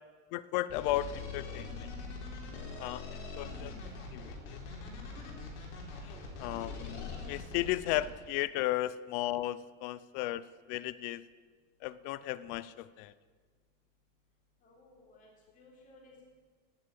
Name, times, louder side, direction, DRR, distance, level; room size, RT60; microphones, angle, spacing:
voice 1, 0.3-1.9 2.8-3.7 4.1-4.6 6.0-11.2 11.8-13.1, left 15 dB, 40° left, 17 dB, 0.4 m, -35 dB
sound 1, 0.7-8.1, left 4 dB, 75° left, 4.2 m, -43 dB
voice 2, 14.6-15.3 15.5-16.3, left 2 dB, 20° left, -3 dB, 3.6 m, -59 dB
11.5 x 9.7 x 8.4 m, 1.5 s
supercardioid pair, 170°, 35 cm